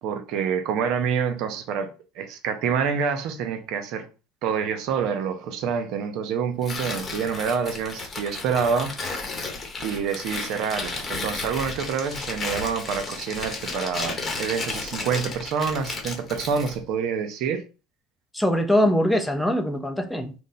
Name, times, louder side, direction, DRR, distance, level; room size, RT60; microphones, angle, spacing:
voice 1, 0.0-4.1 4.4-8.9 9.8-17.6, right 6 dB, 65° right, 0.5 m, -27 dB
Tearing, 6.6-16.8, left 3 dB, 30° left, 0.9 m, -33 dB
voice 2, 18.3-20.3, left 1 dB, 5° left, 0.6 m, -22 dB
2.8 x 2.0 x 3.9 m
supercardioid pair, 90°, 0 cm